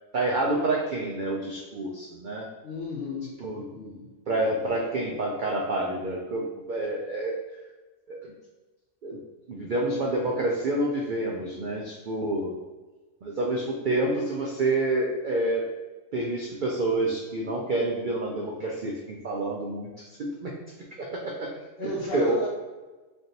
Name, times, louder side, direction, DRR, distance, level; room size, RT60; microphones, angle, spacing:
voice 1, 0.1-2.5 3.4-3.6 4.3-7.4 8.1-8.2 9.0-9.2 9.5-12.5 13.2-15.7 16.1-20.5 21.0-21.5 21.8-22.5, right 2 dB, 85° right, -1 dB, 0.4 m, -28 dB
voice 2, 2.6-3.4 3.7-4.1 16.5-16.6 21.8-22.5, left 2 dB, 65° left, -1 dB, 0.6 m, -33 dB
3.9 x 3.3 x 2.7 m, 1.2 s
omnidirectional pair, 1.4 m